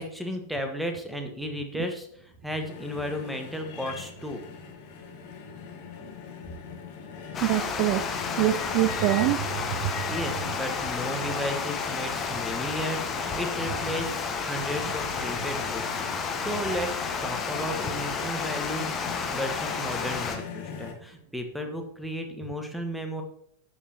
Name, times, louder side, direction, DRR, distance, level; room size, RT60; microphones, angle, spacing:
voice 1, 0.0-4.4 9.9-23.2, equal, ahead, 1.3 m, -34 dB
sound 1, 2.6-20.9, left 6 dB, 45° left, 1.4 m, -41 dB
Water, 7.3-20.4, left 5 dB, 20° left, 1.0 m, -31 dB
voice 2, 7.4-9.9, right 16 dB, 40° right, 0.4 m, -25 dB
13.0 x 5.7 x 2.9 m
figure-of-eight pair, 90°, 0 cm